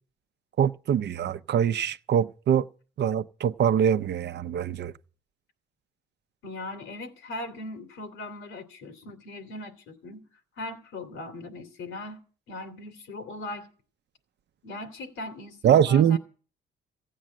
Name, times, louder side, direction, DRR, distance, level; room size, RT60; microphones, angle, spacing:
voice 1, 0.6-2.7 3.0-4.9 15.6-16.2, right 9 dB, 60° right, 0.7 m, -23 dB
voice 2, 6.4-10.2 10.6-12.2 12.5-13.7 14.6-16.2, left 2 dB, 85° left, 2.6 m, -39 dB
15.5 x 8.5 x 7.5 m
cardioid pair, 90°, 20 cm